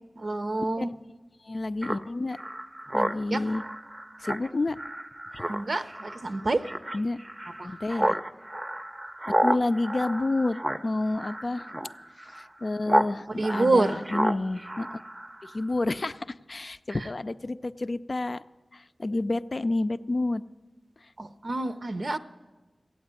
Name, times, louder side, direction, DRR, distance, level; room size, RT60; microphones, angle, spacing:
voice 1, 0.2-0.9 3.3-3.4 5.5-6.6 7.6-7.8 13.3-14.0 16.9-17.1 21.2-22.2, right 2 dB, 65° right, 8 dB, 0.6 m, -27 dB
voice 2, 1.5-2.4 2.9-3.6 4.2-4.8 6.9-7.2 7.6-8.2 9.3-10.6 10.8-11.7 12.3-14.9 15.4-18.4 18.7-20.4, left 2 dB, 55° left, 12 dB, 0.4 m, -29 dB
Speech synthesizer, 1.8-13.1 13.4-15.6, right 1 dB, 25° right, 0.6 m, -31 dB
14.5 x 8.6 x 9.6 m, 1.2 s
wide cardioid pair, 50°, 0 cm